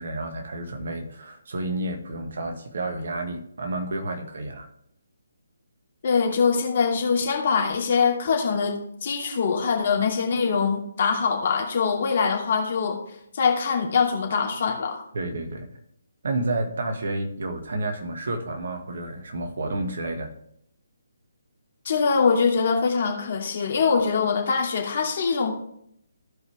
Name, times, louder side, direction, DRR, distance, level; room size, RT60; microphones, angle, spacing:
voice 1, 0.0-4.7 15.1-15.7 16.2-20.4, right 2 dB, 55° right, 4 dB, 1.8 m, -30 dB
voice 2, 6.0-13.0 13.3-15.0 21.8-25.6, left 5 dB, 45° left, 0 dB, 2.6 m, -23 dB
15.5 x 5.3 x 3.5 m, 0.71 s
figure-of-eight pair, 145°, 0 cm